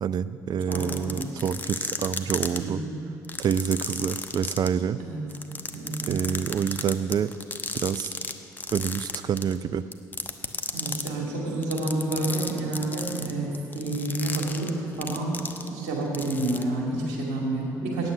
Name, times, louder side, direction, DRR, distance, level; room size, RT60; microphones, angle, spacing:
voice 1, 0.0-2.8 3.4-5.0 6.1-7.3 7.7-8.1 8.7-9.8, right 8 dB, 45° right, 15 dB, 0.4 m, -27 dB
sound 1, 0.6-2.6 3.2-4.7 5.3-8.3 8.6-9.6 9.9-11.1 11.6-15.9 16.1-16.6, left 3 dB, 20° left, 0.9 m, -32 dB
voice 2, 0.7-1.2 2.5-3.0 5.0-5.2 5.7-6.2 10.7-18.1, right 2 dB, 70° right, -2 dB, 2.4 m, -29 dB
9.0 x 8.4 x 8.7 m, 2.7 s
hypercardioid pair, 50°, 9 cm